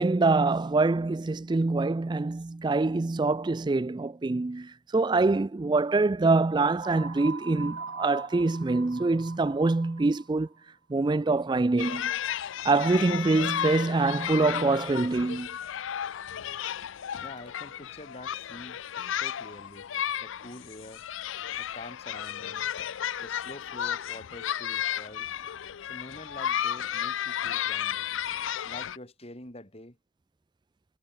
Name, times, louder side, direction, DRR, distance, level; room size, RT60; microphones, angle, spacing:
voice 1, 0.0-10.5 10.9-12.1 12.6-15.5, right 3 dB, 20° right, 0.4 m, -25 dB
sound 1, 6.8-10.4, right 4 dB, 85° right, 2.6 m, -41 dB
sound 2, 11.8-29.0, left 10 dB, 75° left, 0.5 m, -33 dB
voice 2, 17.2-18.8 19.1-19.9 20.2-21.1 21.5-22.6 23.2-25.3 25.9-28.1 28.6-30.0, left 1 dB, 30° left, 4.9 m, -46 dB
head